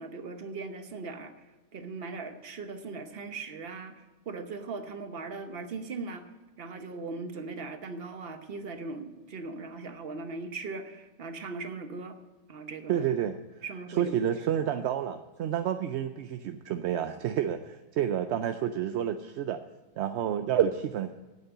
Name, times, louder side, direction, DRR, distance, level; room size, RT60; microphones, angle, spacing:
voice 1, 0.0-1.3 1.7-6.3 6.6-12.2 12.5-13.0 13.6-14.6, right 3 dB, 45° right, 8 dB, 1.1 m, -39 dB
voice 2, 12.9-13.4 14.0-19.6 20.0-21.1, right 9 dB, 65° right, 8 dB, 0.7 m, -29 dB
9.3 x 8.5 x 7.7 m, 1.2 s
omnidirectional pair, 1.4 m